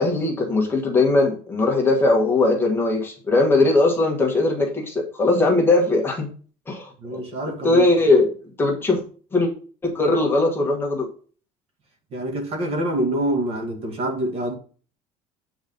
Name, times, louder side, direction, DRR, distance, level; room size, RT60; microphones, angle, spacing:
voice 1, 0.0-6.3 6.7-7.2 7.6-8.3 8.6-9.0 9.3-9.5 9.8-11.1, left 2 dB, 15° left, 1.5 m, -19 dB
voice 2, 7.0-7.9 12.1-14.5, right 1 dB, 40° right, 1.8 m, -26 dB
8.6 x 4.1 x 5.2 m
cardioid pair, 170°, 15 cm